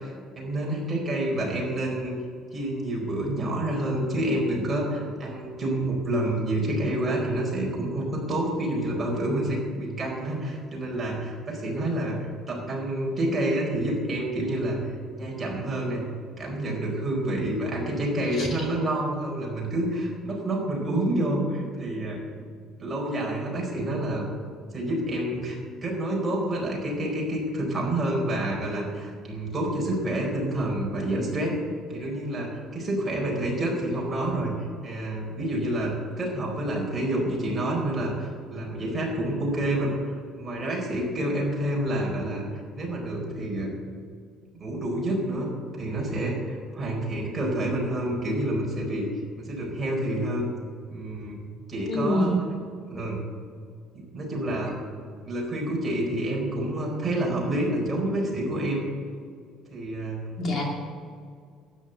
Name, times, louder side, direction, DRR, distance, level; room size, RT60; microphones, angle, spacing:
voice 1, 0.0-2.1 2.5-16.0 16.4-22.2 22.8-24.3 24.7-31.5 31.9-34.5 34.8-42.4 42.8-43.7 44.5-49.0 49.4-50.5 50.9-51.4 51.7-53.2 54.1-54.8 55.2-58.9 59.7-60.2, right 1 dB, 20° right, -2 dB, 4.5 m, -28 dB
voice 2, 51.9-52.4 60.4-60.6, equal, 40° left, 0 dB, 2.4 m, -25 dB
13.0 x 9.6 x 8.1 m, 2.1 s
cardioid pair, 155°, 0 cm